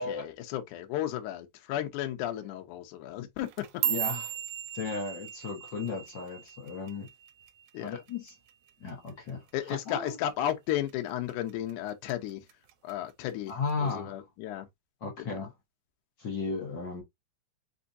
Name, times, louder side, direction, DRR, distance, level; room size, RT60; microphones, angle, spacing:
voice 1, 0.0-3.5 7.7-8.0 9.5-12.4 12.8-13.5 13.8-14.7 15.2-15.4, left 12 dB, 75° left, 2.1 m, -34 dB
sound 1, 3.4-7.8 8.1-8.5 8.9-9.3 9.7-9.9 10.5-10.9 11.3-12.1 12.5-12.9 13.7-13.8, right 11 dB, 80° right, 2.1 m, -36 dB
voice 2, 3.8-4.3 4.7-7.1 7.8-8.3 8.8-10.2 13.5-14.2 15.0-15.5 16.2-17.0, left 4 dB, 60° left, 1.2 m, -35 dB
5.2 x 3.6 x 2.6 m
omnidirectional pair, 3.8 m